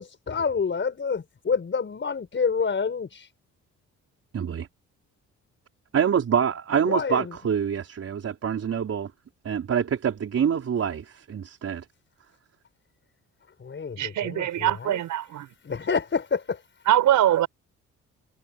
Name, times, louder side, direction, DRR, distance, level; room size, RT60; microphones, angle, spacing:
voice 1, 0.0-3.3 6.9-7.3 13.6-15.0 15.6-16.6, left 5 dB, 40° left, 6.1 m, -28 dB
voice 2, 4.3-4.7 5.9-9.1 9.4-11.8, right 8 dB, 55° right, 4.4 m, -26 dB
voice 3, 14.0-15.5 16.9-17.5, right 12 dB, 80° right, 5.9 m, -23 dB
cardioid pair, 90°, 30 cm